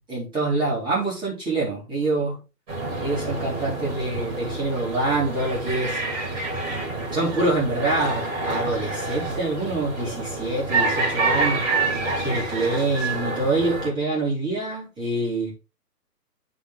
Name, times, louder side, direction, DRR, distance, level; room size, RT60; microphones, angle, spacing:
voice 1, 0.1-2.4 3.0-6.0 6.6-11.7 12.2-15.5, right 2 dB, 10° right, 2.4 m, -26 dB
sound 1, 2.7-13.9, right 3 dB, 25° right, 2.4 m, -27 dB
9.6 x 4.0 x 3.9 m
figure-of-eight pair, 130°, 48 cm